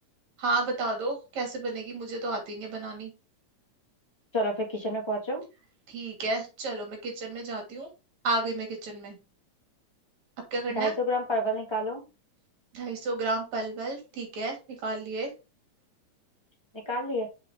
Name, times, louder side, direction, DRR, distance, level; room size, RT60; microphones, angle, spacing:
voice 1, 0.4-3.1 5.9-7.9 8.2-9.2 10.5-10.9 12.7-15.3, right 2 dB, 70° right, 3 dB, 3.8 m, -32 dB
voice 2, 4.3-5.4 10.7-12.0 16.8-17.3, equal, 10° left, 0 dB, 1.6 m, -29 dB
6.8 x 4.6 x 5.0 m, 0.29 s
omnidirectional pair, 3.3 m